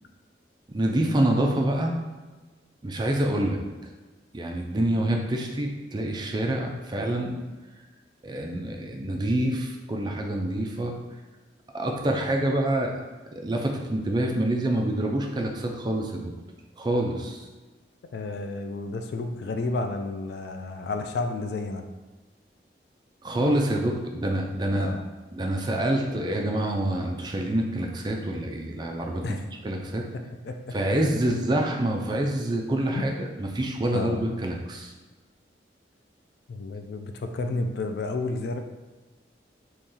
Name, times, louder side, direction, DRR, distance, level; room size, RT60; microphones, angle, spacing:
voice 1, 0.7-2.0 2.8-3.6 4.3-7.3 8.2-11.0 11.7-13.0 13.4-16.2 16.8-17.4 23.2-24.9 25.3-29.2 29.6-30.1 30.7-33.1 33.4-34.9, right 1 dB, 25° right, 1 dB, 0.4 m, -26 dB
voice 2, 18.1-21.9 24.7-25.0 29.2-29.4 30.4-30.8 32.9-33.0 33.9-34.2 36.5-38.6, left 3 dB, 65° left, 6 dB, 0.3 m, -31 dB
3.0 x 2.8 x 3.7 m, 1.3 s
head